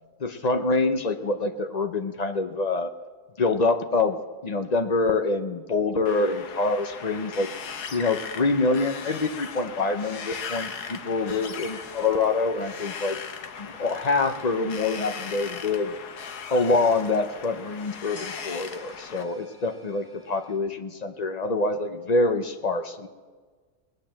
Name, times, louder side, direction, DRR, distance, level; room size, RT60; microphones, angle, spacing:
voice 1, 0.2-2.9 3.4-4.2 4.4-7.5 7.9-13.2 13.6-15.9 16.5-23.1, left 3 dB, 50° left, 8 dB, 0.5 m, -25 dB
Wind, 6.1-19.2, left 6 dB, 85° left, 1.6 m, -38 dB
sound 1, 18.1-20.6, equal, 15° left, 2.8 m, -52 dB
20.5 x 9.0 x 7.5 m, 1.5 s
omnidirectional pair, 1.6 m